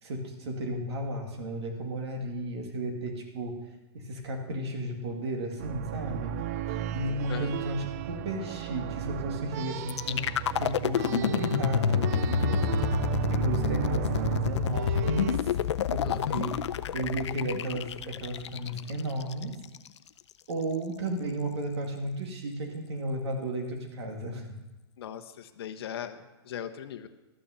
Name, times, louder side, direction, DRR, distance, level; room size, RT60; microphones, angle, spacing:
voice 1, 0.0-3.6 3.9-6.3 6.9-10.3 10.6-12.6 13.3-15.6 15.9-16.6 16.9-19.5 20.5-24.4, right 1 dB, 70° right, 2 dB, 2.4 m, -33 dB
sound 1, 5.6-15.4, right 10 dB, 35° right, 0.4 m, -33 dB
sound 2, 9.9-19.9, left 10 dB, 80° left, 0.6 m, -29 dB
voice 2, 25.0-27.1, left 9 dB, 60° left, 7 dB, 0.9 m, -39 dB
12.5 x 6.4 x 7.1 m, 1.1 s
hypercardioid pair, 160°, 14 cm